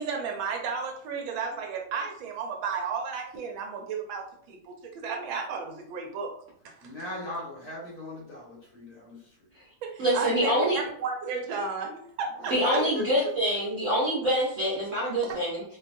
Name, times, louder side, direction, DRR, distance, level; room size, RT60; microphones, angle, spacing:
voice 1, 0.0-6.3 6.6-6.9 9.8-12.8 15.2-15.4, right 5 dB, 75° right, 3 dB, 1.2 m, -33 dB
voice 2, 6.8-9.5 12.4-13.3, left 2 dB, 85° left, -5 dB, 2.3 m, -38 dB
voice 3, 10.0-10.8 12.5-15.6, equal, 60° right, -6 dB, 0.8 m, -25 dB
4.1 x 2.3 x 2.5 m, 0.63 s
omnidirectional pair, 2.4 m